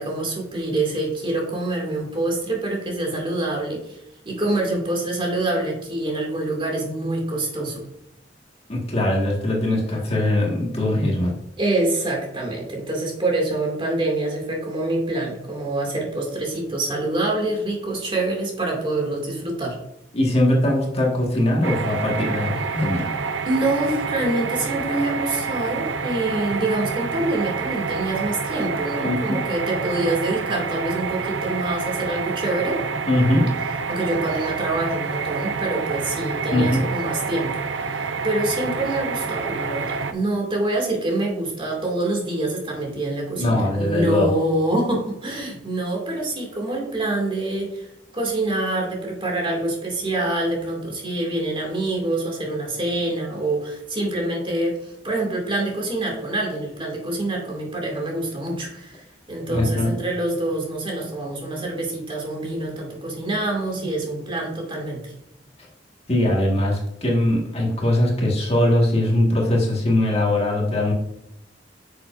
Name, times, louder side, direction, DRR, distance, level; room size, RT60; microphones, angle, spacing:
voice 1, 0.0-7.8 11.6-19.8 23.5-32.8 33.9-47.9 48.1-65.1, right 2 dB, 30° right, -1 dB, 2.4 m, -26 dB
voice 2, 8.7-11.3 20.1-23.1 29.0-29.4 33.1-33.5 36.5-36.8 43.4-44.4 59.5-59.9 66.1-70.9, left 1 dB, 35° left, -2 dB, 1.8 m, -21 dB
sound 1, 21.6-40.1, right 5 dB, 80° right, 0.6 m, -28 dB
9.5 x 6.7 x 2.6 m, 0.83 s
head